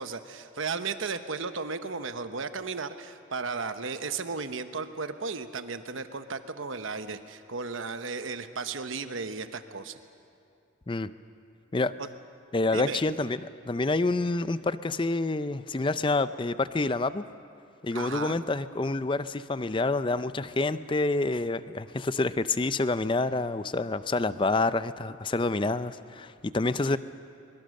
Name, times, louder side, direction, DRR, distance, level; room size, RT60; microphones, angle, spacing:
voice 1, 0.0-10.0 12.7-13.0 17.9-18.4, right 4 dB, 75° right, 9 dB, 1.0 m, -35 dB
voice 2, 12.5-17.2 17.8-27.0, left 2 dB, 25° left, 14 dB, 0.5 m, -28 dB
23.5 x 22.5 x 6.5 m, 2.5 s
head